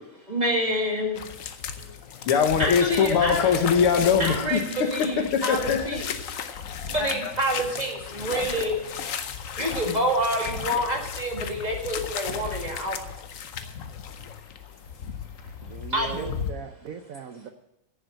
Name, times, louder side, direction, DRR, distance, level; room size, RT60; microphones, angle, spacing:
voice 1, 0.3-1.2 2.6-3.5 4.2-6.1 6.9-8.8 9.6-13.0 15.9-16.4, right 1 dB, 20° right, 0 dB, 2.0 m, -27 dB
sound 1, 1.2-16.5, left 7 dB, 70° left, 0.7 m, -35 dB
voice 2, 2.3-4.6 5.3-6.0 7.0-7.3, left 6 dB, 85° left, 5 dB, 2.2 m, -22 dB
sound 2, 2.4-4.5 5.6-6.0 6.3-7.1 8.3-9.2 10.4-11.0 12.2-13.1, left 5 dB, 55° left, 1.1 m, -40 dB
voice 3, 15.7-17.5, right 8 dB, 75° right, 7 dB, 0.7 m, -39 dB
10.5 x 7.3 x 8.7 m, 0.83 s
omnidirectional pair, 2.4 m